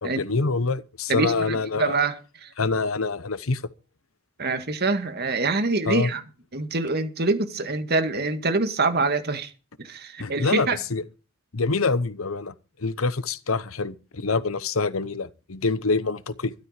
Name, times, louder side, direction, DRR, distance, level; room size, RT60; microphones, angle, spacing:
voice 1, 0.0-2.0 2.6-3.6 5.9-6.1 10.2-11.0 11.5-16.5, left 3 dB, 85° left, 1.0 m, -26 dB
voice 2, 1.1-2.1 2.4-2.5 4.4-6.2 6.5-9.5 9.8-10.8, right 3 dB, 50° right, 1.8 m, -25 dB
13.0 x 12.5 x 5.1 m
head